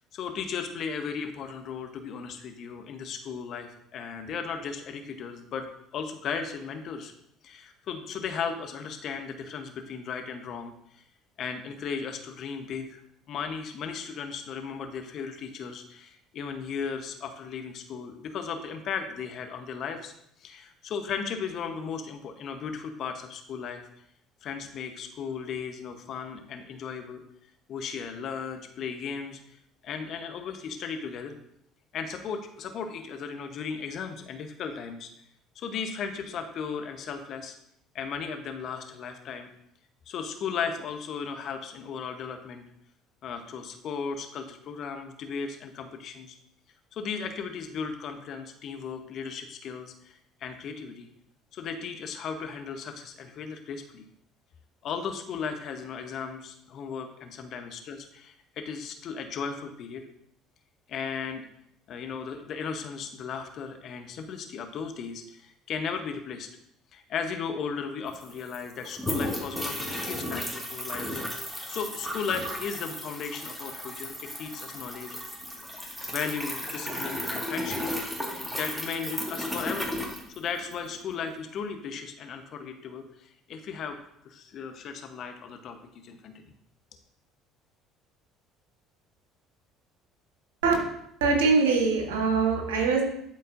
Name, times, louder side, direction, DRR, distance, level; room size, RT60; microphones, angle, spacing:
voice 1, 0.1-7.1 7.4-11.0 11.4-13.0 13.3-20.1 20.4-23.8 24.4-27.2 27.7-29.4 29.8-31.4 31.9-35.1 35.5-37.5 37.9-39.5 40.1-42.7 43.2-46.3 46.9-51.1 51.5-54.1 54.8-60.1 60.9-61.4 61.9-66.5 66.9-71.2 71.7-75.2 76.1-77.8 78.5-80.0 80.4-84.0 84.2-86.5, left 6 dB, 55° left, 6 dB, 1.0 m, -36 dB
sound 1, 67.8-67.9 68.1-80.9, left 1 dB, 5° right, 1.9 m, -34 dB
voice 2, 91.2-93.0, right 4 dB, 80° right, 2 dB, 1.4 m, -23 dB
11.5 x 4.2 x 2.6 m, 0.74 s
hypercardioid pair, 60°, 0 cm